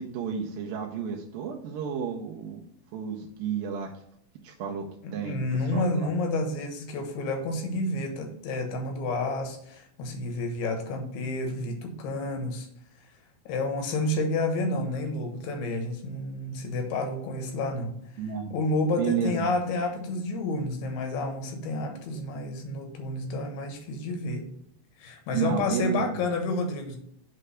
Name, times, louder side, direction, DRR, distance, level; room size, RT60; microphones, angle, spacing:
voice 1, 0.0-2.6 2.9-3.9 4.4-4.9 5.1-6.1 18.2-18.6 18.9-19.5 25.3-26.2, right 7 dB, 75° right, -1 dB, 2.4 m, -31 dB
voice 2, 5.0-12.7 13.5-18.0 18.5-24.5 25.0-27.0, left 2 dB, 90° left, 4 dB, 3.2 m, -30 dB
7.8 x 3.3 x 6.3 m, 0.72 s
omnidirectional pair, 4.4 m